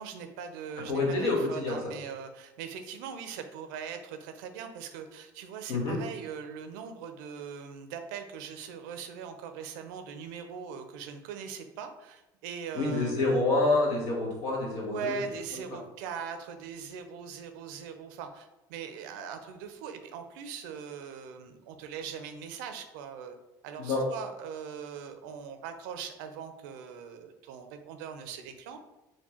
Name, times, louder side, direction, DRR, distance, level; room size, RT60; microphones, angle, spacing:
voice 1, 0.0-13.5 14.8-23.4 23.6-28.8, right 7 dB, 90° right, 7 dB, 0.5 m, -41 dB
voice 2, 0.8-1.9 5.7-6.0 12.7-15.2 15.7-15.8 23.8-24.0, left 2 dB, 75° left, -1 dB, 1.4 m, -28 dB
4.5 x 2.2 x 4.3 m, 0.96 s
supercardioid pair, 105°, 10 cm